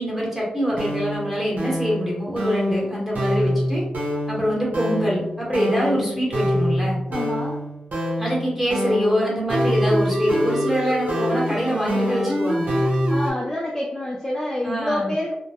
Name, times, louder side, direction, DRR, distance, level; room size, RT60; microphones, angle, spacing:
voice 1, 0.0-3.8 4.3-7.0 8.2-12.8 14.6-15.1, equal, 10° right, -5 dB, 1.1 m, -24 dB
sound 1, 0.7-13.3, equal, 80° right, 0.8 m, -25 dB
voice 2, 7.1-7.6 13.1-15.4, left 1 dB, 20° left, -3 dB, 0.4 m, -27 dB
2.2 x 2.1 x 2.8 m, 0.89 s
cardioid pair, 60°, 3 cm